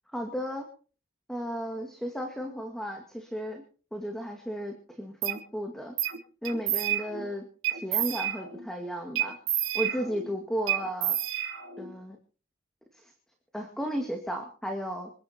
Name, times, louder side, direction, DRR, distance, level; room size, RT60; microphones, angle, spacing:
voice 1, 0.1-0.7 1.3-3.6 3.9-5.9 6.4-7.4 7.7-9.4 9.7-11.2 11.8-12.2 12.9-13.1 13.5-15.1, equal, 5° left, 3 dB, 2.2 m, -34 dB
sound 1, 5.2-5.4 6.0-6.2 6.4-7.3 7.6-8.6 9.1-10.3 10.7-11.9, right 11 dB, 80° right, 3.9 m, -30 dB
26.5 x 10.5 x 4.5 m, 0.40 s
head